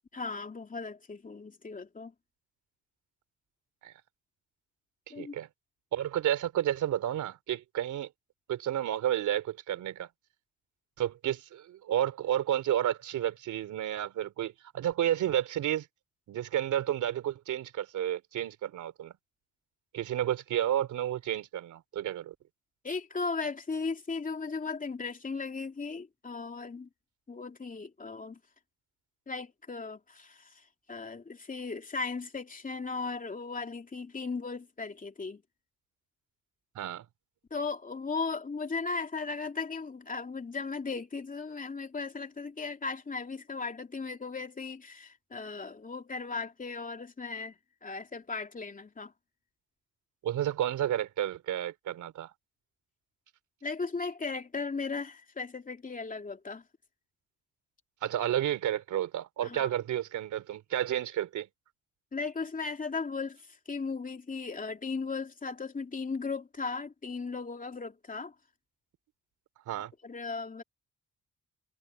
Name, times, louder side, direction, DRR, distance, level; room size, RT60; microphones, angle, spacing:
voice 1, 0.1-2.1 5.1-5.4 22.8-26.9 27.3-28.4 29.3-30.6 30.9-35.4 37.5-47.5 47.8-49.1 53.6-56.6 59.4-59.7 62.1-68.3 70.0-70.6, left 4 dB, 25° left, 2.9 m, -37 dB
voice 2, 5.2-5.5 5.9-8.1 8.5-10.1 11.0-15.9 16.3-19.1 19.9-22.3 36.7-37.0 50.2-52.3 58.0-61.5 69.7-69.9, right 11 dB, 75° right, 3.2 m, -31 dB
cardioid pair, 90°, 30 cm